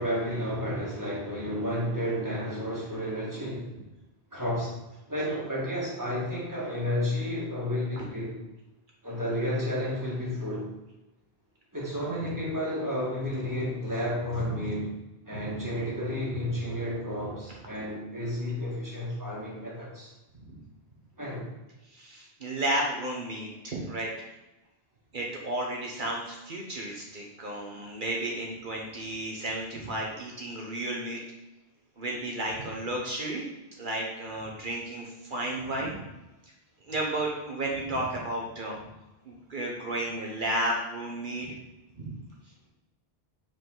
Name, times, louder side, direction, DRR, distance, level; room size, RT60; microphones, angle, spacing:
voice 1, 0.0-3.7 4.3-4.8 5.1-8.4 9.0-10.7 11.7-14.9 15.3-20.1 21.2-21.5, equal, 20° right, -5 dB, 1.8 m, -31 dB
voice 2, 21.9-24.1 25.1-31.2 32.0-33.4 33.8-36.0 36.8-38.8 39.2-41.6 42.0-42.1, right 1 dB, 55° right, -2 dB, 1.1 m, -33 dB
5.2 x 5.0 x 3.8 m, 1.0 s
omnidirectional pair, 1.1 m